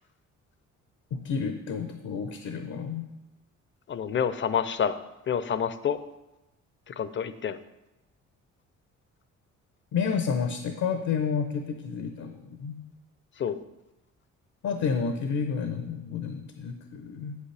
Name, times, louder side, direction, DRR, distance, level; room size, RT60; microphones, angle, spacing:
voice 1, 1.1-3.1 9.9-12.8 14.6-17.3, left 6 dB, 70° left, 7 dB, 0.8 m, -30 dB
voice 2, 3.9-5.0 5.3-6.0 6.9-7.6 13.4-13.6, left 7 dB, 40° left, 12 dB, 0.5 m, -28 dB
8.4 x 7.6 x 3.3 m, 0.98 s
cardioid pair, 90°, 30 cm